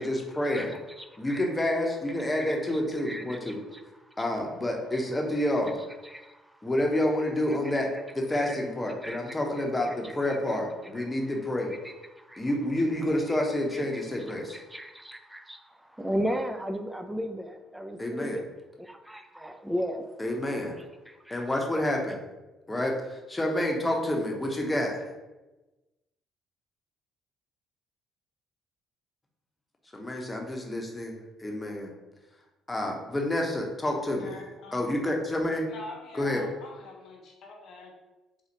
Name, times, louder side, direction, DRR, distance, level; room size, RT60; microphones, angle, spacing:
voice 1, 0.0-0.7 1.2-3.6 4.2-5.8 6.6-7.9 8.1-11.7 12.4-14.6 18.0-18.4 20.2-20.7 21.3-22.2 22.7-25.0 29.9-31.1 31.4-31.9 32.7-34.4 34.7-35.7 36.1-36.4, left 1 dB, 20° left, 1 dB, 0.8 m, -28 dB
voice 2, 0.5-1.5 2.2-2.7 3.0-4.3 4.9-5.1 6.0-6.7 7.5-7.8 8.4-8.6 9.0-9.4 9.8-10.6 10.9-11.4 11.7-12.5 13.3-13.4 13.7-18.4 18.8-20.1 20.8-21.5, equal, 5° right, 6 dB, 0.4 m, -37 dB
voice 3, 34.2-35.0 35.7-37.9, left 2 dB, 60° left, 0 dB, 0.8 m, -44 dB
4.0 x 2.4 x 3.0 m, 1.1 s
hypercardioid pair, 55°, 0 cm